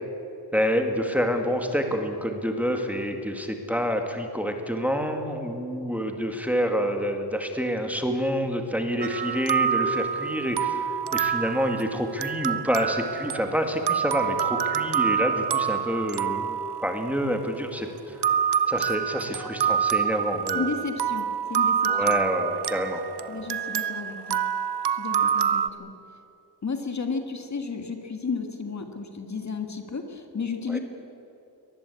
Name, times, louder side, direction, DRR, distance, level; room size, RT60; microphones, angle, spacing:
voice 1, 0.5-18.2 18.7-20.7 21.9-23.0 30.7-30.8, equal, 5° right, 4 dB, 2.0 m, -27 dB
sound 1, 9.0-17.6 18.2-25.7, right 8 dB, 70° right, 0.8 m, -27 dB
voice 2, 20.5-22.2 23.3-24.4 24.9-25.9 26.6-30.8, left 4 dB, 40° left, 5 dB, 1.9 m, -33 dB
23.5 x 19.5 x 8.4 m, 2.8 s
wide cardioid pair, 145°, 41 cm